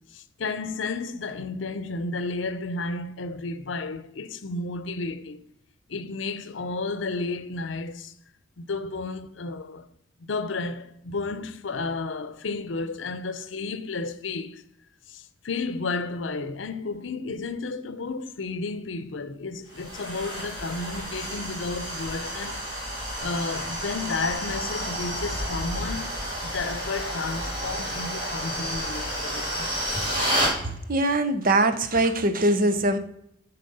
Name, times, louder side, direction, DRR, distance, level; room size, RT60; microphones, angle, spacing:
voice 1, 0.1-5.4 5.9-8.1 8.6-9.9 10.2-14.6 15.1-22.6 23.2-26.1 26.4-29.7, left 3 dB, 75° left, 0.6 m, -32 dB
sound 1, 19.7-30.6, equal, 25° right, 3.3 m, -30 dB
voice 2, 30.9-33.0, right 2 dB, 50° right, 0.7 m, -22 dB
10.0 x 4.2 x 5.4 m
head